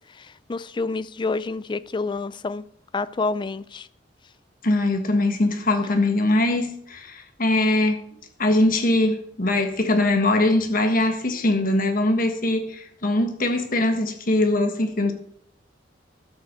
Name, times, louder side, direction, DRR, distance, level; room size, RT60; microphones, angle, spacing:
voice 1, 0.1-2.6 2.9-3.9, left 3 dB, 25° left, 0.4 m, -28 dB
voice 2, 4.6-8.0 8.4-15.1, left 2 dB, 45° left, 1.4 m, -22 dB
12.0 x 5.6 x 6.7 m
head